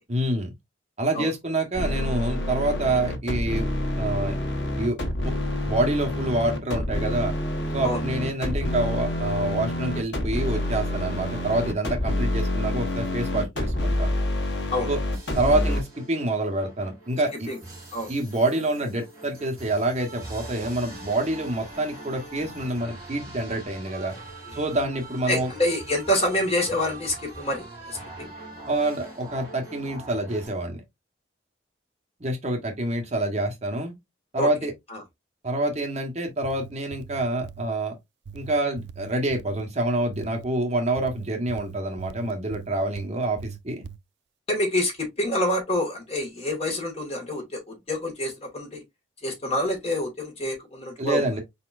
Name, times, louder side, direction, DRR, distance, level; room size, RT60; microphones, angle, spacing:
voice 1, 0.1-0.5 1.0-3.7 4.0-4.3 4.8-5.0 5.6-7.3 7.7-14.1 14.9-15.0 15.3-17.5 18.1-24.1 24.6-25.5 28.7-30.8 32.2-33.9 34.3-34.7 35.4-37.9 38.3-43.8 51.0-51.4, right 1 dB, 35° right, 1.1 m, -27 dB
sound 1, 1.7-15.8, left 1 dB, 80° left, 1.2 m, -27 dB
sound 2, 15.1-30.5, right 2 dB, 20° right, 3.1 m, -43 dB
voice 2, 25.3-28.3 34.4-34.5 34.9-35.0 44.5-48.8 49.2-51.2, left 1 dB, 35° left, 1.8 m, -27 dB
sound 3, 36.3-37.7 38.3-39.7 40.1-40.5 41.0-43.1 43.4-44.0, right 6 dB, 65° right, 0.4 m, -41 dB
4.4 x 4.2 x 2.5 m
head